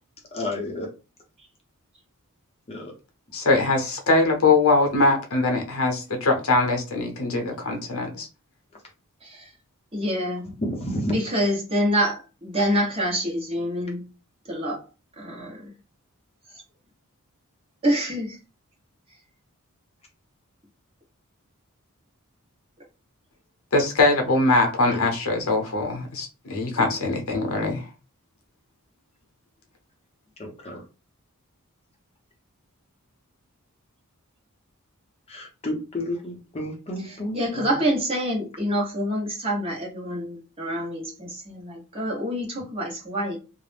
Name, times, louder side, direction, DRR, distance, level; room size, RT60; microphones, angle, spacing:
voice 1, 0.3-0.9 2.7-2.9 10.6-11.2 24.8-25.4 30.4-30.8 35.3-37.7, left 1 dB, 25° left, 0.6 m, -31 dB
voice 2, 3.3-8.3 23.7-27.8, left 3 dB, 65° left, 0.7 m, -22 dB
voice 3, 9.2-9.5 9.9-10.5 11.0-14.1 14.5-14.8 15.2-15.7 17.8-18.4 37.0-43.4, equal, 25° right, 1.0 m, -26 dB
2.4 x 2.0 x 3.3 m
head